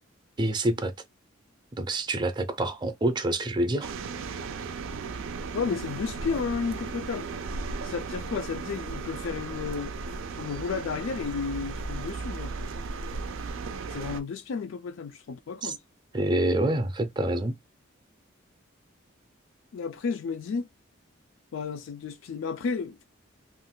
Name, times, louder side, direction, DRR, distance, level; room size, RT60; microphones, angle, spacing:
voice 1, 0.4-0.9 1.7-3.9 15.6-15.7 16.1-17.6, right 1 dB, 20° right, 0.5 m, -27 dB
sound 1, 3.8-14.2, right 4 dB, 90° right, 0.4 m, -36 dB
voice 2, 5.5-7.3 7.8-10.0 10.4-12.5 13.9-15.8 19.7-20.7 21.5-23.0, left 5 dB, 75° left, 0.3 m, -32 dB
2.5 x 2.2 x 3.6 m
head